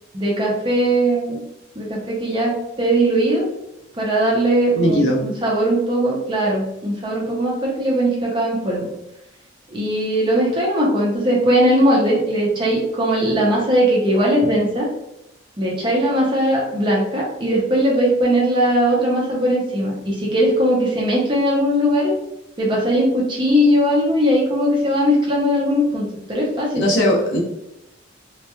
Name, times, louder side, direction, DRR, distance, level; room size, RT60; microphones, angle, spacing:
voice 1, 0.1-1.4 1.8-3.4 4.0-8.9 9.7-14.9 15.6-22.1 22.6-26.8, equal, 25° right, -3 dB, 0.5 m, -19 dB
voice 2, 4.7-5.2 26.7-27.4, equal, 60° left, -2 dB, 0.7 m, -18 dB
2.8 x 2.2 x 2.2 m, 0.88 s
head